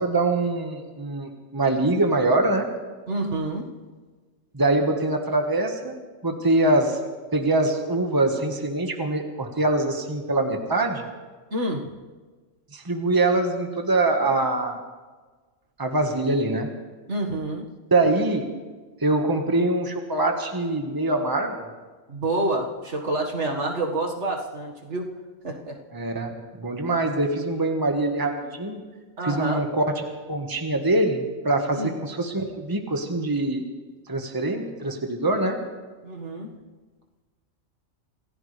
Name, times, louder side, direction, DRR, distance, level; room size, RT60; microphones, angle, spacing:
voice 1, 0.0-2.7 4.5-5.9 6.2-7.0 7.3-11.0 12.7-14.8 15.8-16.7 17.9-18.4 19.0-21.6 25.9-28.8 29.2-33.6 34.1-35.6, right 2 dB, 15° right, 3 dB, 1.6 m, -24 dB
voice 2, 3.1-3.7 11.5-11.9 17.1-17.7 22.1-25.1 25.4-25.8 29.2-29.6 31.7-31.9 36.0-36.5, right 2 dB, 65° right, 0 dB, 2.2 m, -28 dB
27.0 x 15.5 x 3.4 m, 1.4 s
omnidirectional pair, 1.3 m